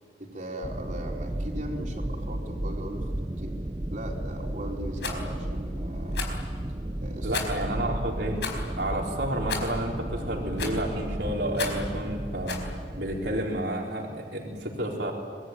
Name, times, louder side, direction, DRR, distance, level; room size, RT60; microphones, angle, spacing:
voice 1, 0.2-3.6 3.9-6.3 7.0-7.4, right 1 dB, 45° right, 0 dB, 4.3 m, -38 dB
sound 1, 0.6-13.6, right 1 dB, 25° right, 0.8 m, -34 dB
Rattle, 5.0-5.2 6.1-6.4 7.3-7.7 8.4-8.6 9.5-9.8 10.6-10.9 11.6-11.9 12.5-12.7, left 5 dB, 80° left, 4.7 m, -33 dB
voice 2, 7.2-8.4 8.8-12.6 13.0-15.1, right 1 dB, 70° right, -1 dB, 4.4 m, -30 dB
25.5 x 21.5 x 9.2 m, 2.1 s
head